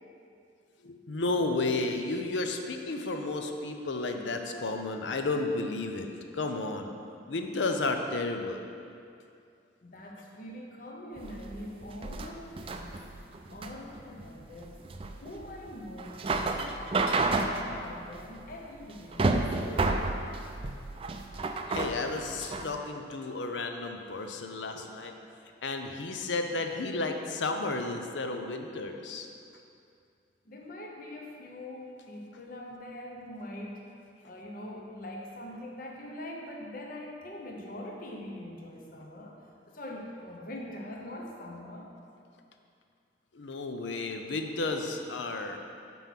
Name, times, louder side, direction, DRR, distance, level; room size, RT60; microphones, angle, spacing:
voice 1, 0.8-6.1 6.3-6.9 7.3-8.7 21.7-25.1 25.6-29.3 43.3-45.6, left 3 dB, 90° left, 5 dB, 0.6 m, -32 dB
voice 2, 9.8-13.0 13.5-14.8 15.2-16.2 16.5-20.1 30.5-33.8 34.2-41.9, left 1 dB, 50° left, 0 dB, 0.8 m, -43 dB
sound 1, 11.2-22.7, right 3 dB, 30° right, 0.4 m, -31 dB
6.1 x 5.4 x 5.8 m, 2.4 s
head